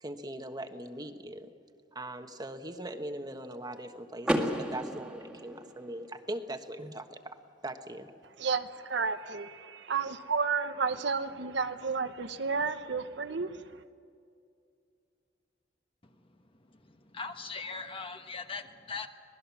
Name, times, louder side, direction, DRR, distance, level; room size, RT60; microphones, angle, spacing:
voice 1, 0.0-1.5 1.9-7.4 7.6-8.1, right 1 dB, 20° right, 7 dB, 1.3 m, -40 dB
Car / Door, 4.2-6.2, equal, 5° right, 1.9 m, -33 dB
voice 2, 8.4-13.6, right 5 dB, 65° right, 9 dB, 1.0 m, -32 dB
voice 3, 16.0-19.1, left 4 dB, 30° left, 6 dB, 1.4 m, -41 dB
26.0 x 19.0 x 7.2 m, 2.4 s
head